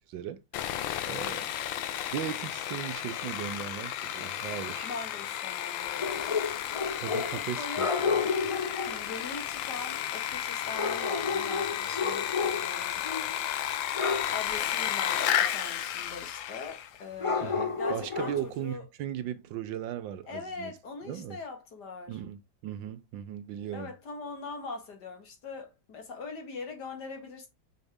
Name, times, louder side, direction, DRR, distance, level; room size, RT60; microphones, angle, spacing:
voice 1, 0.1-0.4 1.1-1.5 2.1-4.9 7.0-8.2 17.4-20.7 21.0-21.4 22.1-23.9, right 10 dB, 80° right, 1.5 m, -37 dB
Sawing, 0.5-17.0, left 11 dB, 85° left, 1.4 m, -33 dB
voice 2, 1.2-1.5 4.8-6.4 7.3-7.9 8.9-13.0 14.3-18.9 20.3-22.2 23.7-27.5, left 4 dB, 60° left, 2.3 m, -41 dB
sound 1, 6.0-7.4 7.7-9.0 10.7-12.8 13.0-13.4 13.9-14.4 17.2-18.5, left 5 dB, 45° left, 0.4 m, -31 dB
6.3 x 5.4 x 3.6 m
omnidirectional pair, 2.0 m